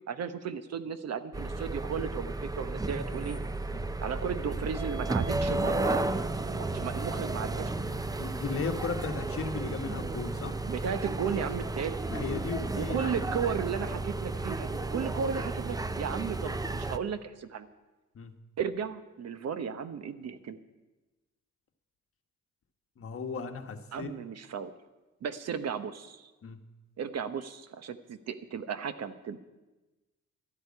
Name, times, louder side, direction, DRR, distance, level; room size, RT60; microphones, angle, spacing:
voice 1, 0.1-3.4 4.0-7.8 10.6-12.0 12.8-17.7 18.6-20.6 23.9-24.7 25.2-26.3 27.0-29.4, right 7 dB, 55° right, 11 dB, 1.0 m, -35 dB
sound 1, 1.3-17.0, right 2 dB, 10° right, 0.6 m, -33 dB
voice 2, 8.2-10.5 12.1-13.2 18.1-18.3 23.0-24.1 26.4-26.6, left 5 dB, 45° left, 6 dB, 1.4 m, -36 dB
12.5 x 8.0 x 9.8 m, 1.1 s
cardioid pair, 90°, 30 cm